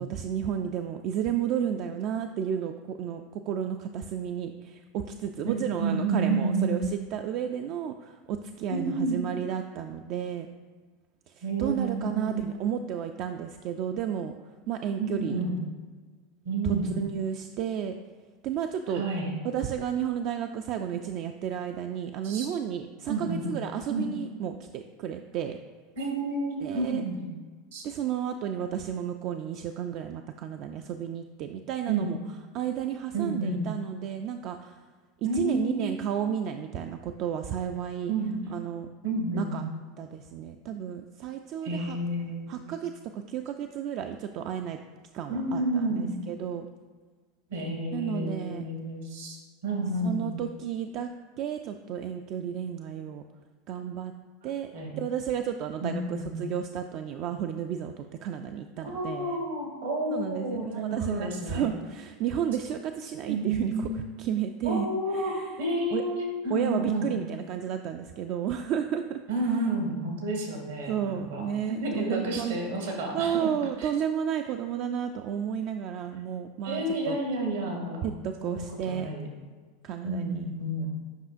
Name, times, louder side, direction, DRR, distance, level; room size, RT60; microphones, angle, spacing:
voice 1, 0.0-10.5 11.3-14.3 14.7-15.4 16.6-17.9 18.4-19.0 19.4-25.6 26.6-27.0 27.8-32.2 32.5-34.8 35.2-38.1 38.5-38.9 39.3-39.6 40.0-42.0 42.5-44.8 45.1-46.7 47.9-48.6 50.0-51.1 51.4-53.2 53.7-54.1 54.4-59.4 60.1-64.9 65.1-65.5 65.9-66.0 66.5-69.2 70.9-72.6 73.1-77.2 78.0-79.1 79.8-80.5, right 9 dB, 50° right, 6 dB, 0.3 m, -32 dB
voice 2, 5.8-6.8 8.7-9.2 11.4-12.6 15.0-15.6 16.4-16.9 18.9-19.3 22.2-22.5 23.1-23.5 23.9-24.1 26.0-27.2 27.7-27.8 31.9-32.2 33.1-33.7 35.2-35.9 38.1-38.4 39.0-39.6 41.6-42.8 45.3-46.1 47.5-49.4 49.6-50.3 54.7-55.0 55.8-56.4 58.8-61.7 63.3-63.9 64.6-67.2 69.3-71.4 71.7-73.9 76.6-78.0 78.4-79.3 80.0-80.9, right 2 dB, 80° right, 0 dB, 1.7 m, -30 dB
7.9 x 5.4 x 2.5 m, 1.5 s
hypercardioid pair, 85°, 0 cm